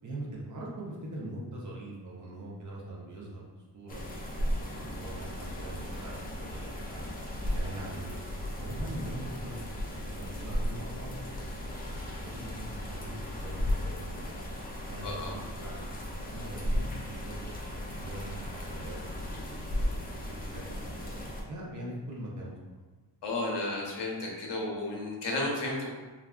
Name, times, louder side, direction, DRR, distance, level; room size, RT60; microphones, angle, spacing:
voice 1, 0.0-3.4 3.7-4.0 4.6-7.0 7.5-8.2 8.6-11.1 11.9-14.3 14.9-15.8 16.3-17.5 17.9-19.7 20.1-22.8, right 1 dB, 45° right, -4 dB, 0.6 m, -42 dB
sound 1, 3.9-21.4, equal, 20° left, 0.3 m, -36 dB
voice 2, 15.0-15.3 23.2-25.9, left 2 dB, 65° left, -2 dB, 0.7 m, -33 dB
3.4 x 2.4 x 2.2 m, 1.3 s
wide cardioid pair, 165°, 45 cm